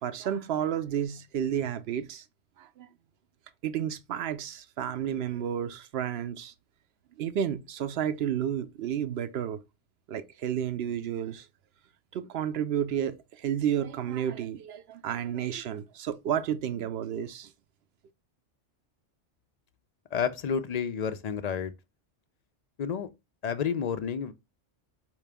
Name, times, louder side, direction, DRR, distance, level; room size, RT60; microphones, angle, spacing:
voice 1, 0.0-2.2 2.6-2.9 3.6-6.5 7.2-9.6 10.1-11.5 12.1-17.5, right 9 dB, 65° right, 0.8 m, -31 dB
voice 2, 20.1-21.7 22.8-23.1 23.4-24.3, left 7 dB, 60° left, 0.4 m, -30 dB
4.9 x 3.0 x 3.3 m
omnidirectional pair, 1.2 m